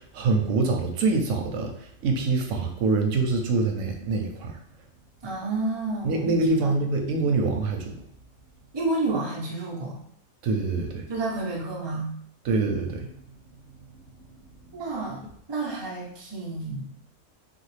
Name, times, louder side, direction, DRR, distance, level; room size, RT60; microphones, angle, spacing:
voice 1, 0.0-4.6 6.0-8.0 10.4-11.0 12.4-13.1 14.1-14.4, right 3 dB, 85° right, 3 dB, 0.9 m, -25 dB
voice 2, 5.2-6.2 6.6-6.8 8.7-10.0 11.1-12.1 14.7-16.9, right 2 dB, 25° right, -3 dB, 0.6 m, -30 dB
3.3 x 2.3 x 3.2 m, 0.67 s
omnidirectional pair, 1.3 m